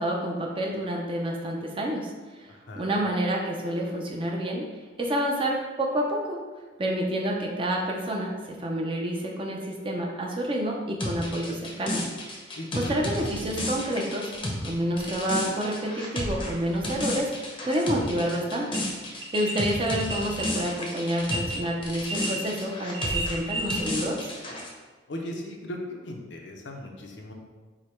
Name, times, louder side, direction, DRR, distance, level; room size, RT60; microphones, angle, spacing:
voice 1, 0.0-2.1 2.8-4.6 5.0-6.4 6.8-12.1 12.7-14.3 14.6-17.3 17.7-18.9 19.3-24.3, right 1 dB, 30° right, -1 dB, 0.6 m, -28 dB
voice 2, 2.5-2.9 12.5-13.3 25.1-27.3, left 1 dB, 70° left, 1 dB, 0.6 m, -37 dB
sound 1, 11.0-21.6 21.8-24.7, left 1 dB, 30° left, 0.7 m, -32 dB
sound 2, 18.0-18.2 18.7-18.8 19.2-21.6 22.1-22.5 22.8-23.9 24.2-24.3, right 2 dB, 75° right, 0.9 m, -32 dB
4.8 x 2.2 x 4.3 m, 1.3 s
head